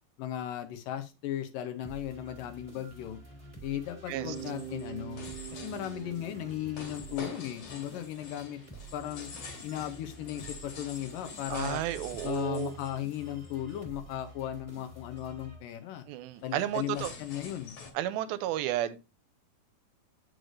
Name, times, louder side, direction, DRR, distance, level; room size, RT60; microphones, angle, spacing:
voice 1, 0.2-3.2 3.6-5.2 5.5-8.6 8.9-9.3 9.6-11.8 12.2-16.1 16.4-17.7, left 12 dB, 75° left, 2.2 m, -36 dB
sound 1, 1.8-16.1, right 2 dB, 5° right, 1.2 m, -50 dB
Bass guitar, 4.1-8.2, right 11 dB, 70° right, 1.8 m, -44 dB
sound 2, 4.3-13.7 14.1-14.4 14.8-14.9 15.2-15.4 16.3-17.9, left 4 dB, 50° left, 2.3 m, -47 dB
voice 2, 11.5-12.7 16.1-17.1 17.9-19.0, right 13 dB, 90° right, 2.4 m, -32 dB
7.8 x 6.4 x 2.5 m
omnidirectional pair, 4.2 m